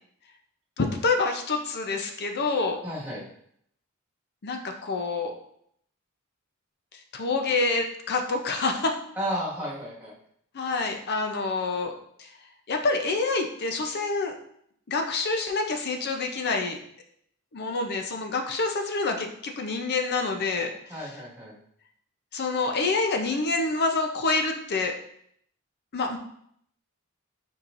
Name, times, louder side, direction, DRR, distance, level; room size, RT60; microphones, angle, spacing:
voice 1, 0.8-2.8 4.4-5.3 7.1-9.0 10.5-11.9 12.2-12.3 12.7-14.3 14.9-16.8 17.5-21.0 22.3-24.9 25.9-26.2, left 3 dB, 50° left, 4 dB, 0.6 m, -27 dB
voice 2, 2.8-3.2 9.2-10.1 20.9-21.6, equal, 10° right, -8 dB, 1.6 m, -32 dB
4.7 x 4.2 x 2.5 m, 0.68 s
head